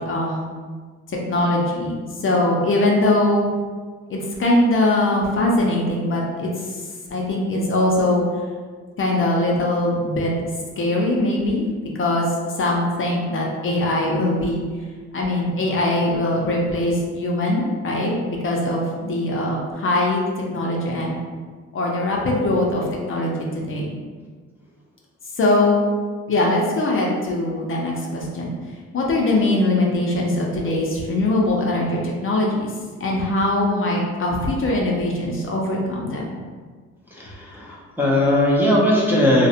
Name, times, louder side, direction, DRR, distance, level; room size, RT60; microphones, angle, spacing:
voice 1, 0.1-0.5 1.1-3.5 4.1-6.8 7.1-8.4 9.0-10.3 10.8-11.7 12.0-12.3 12.6-14.6 15.1-20.2 20.5-21.2 21.7-24.0 25.4-25.8 26.3-28.5 28.9-32.7 33.0-36.4, left 1 dB, 45° left, -2 dB, 0.5 m, -21 dB
voice 2, 37.2-39.5, left 1 dB, 5° right, -6 dB, 0.5 m, -19 dB
2.4 x 2.1 x 2.7 m, 1.5 s
cardioid pair, 90°, 30 cm